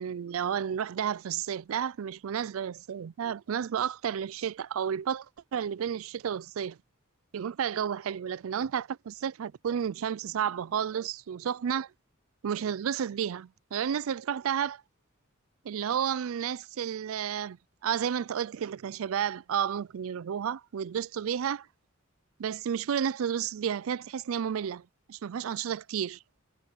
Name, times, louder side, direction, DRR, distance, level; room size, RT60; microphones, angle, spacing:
voice 1, 0.0-5.3 5.5-6.8 7.3-11.9 12.4-14.8 15.6-17.6 17.8-21.7 22.4-24.8 25.1-26.2, right 8 dB, 75° right, 0.4 m, -31 dB
head